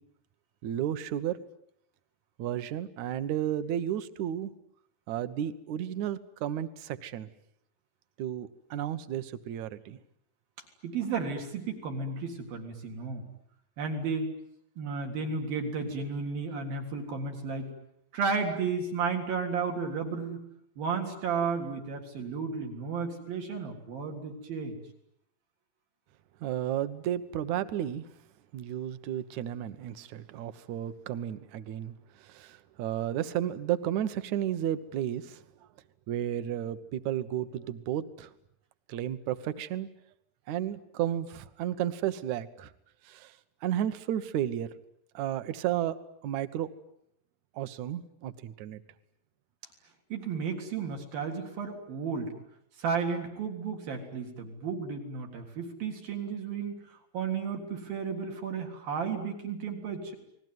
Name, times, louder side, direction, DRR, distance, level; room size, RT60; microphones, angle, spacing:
voice 1, 0.6-1.4 2.4-4.5 5.1-7.3 8.2-10.0 26.4-28.0 28.5-35.4 36.1-38.3 38.9-39.9 40.5-42.7 43.1-43.3 43.6-44.7 45.1-46.0 46.2-46.7 47.6-48.8, right 11 dB, 65° right, 12 dB, 2.3 m, -33 dB
voice 2, 10.8-13.2 13.8-14.3 14.8-17.7 18.1-20.4 20.8-24.8 50.1-52.4 52.8-60.2, right 5 dB, 80° right, 3 dB, 5.3 m, -33 dB
29.5 x 20.5 x 9.5 m, 0.74 s
omnidirectional pair, 4.1 m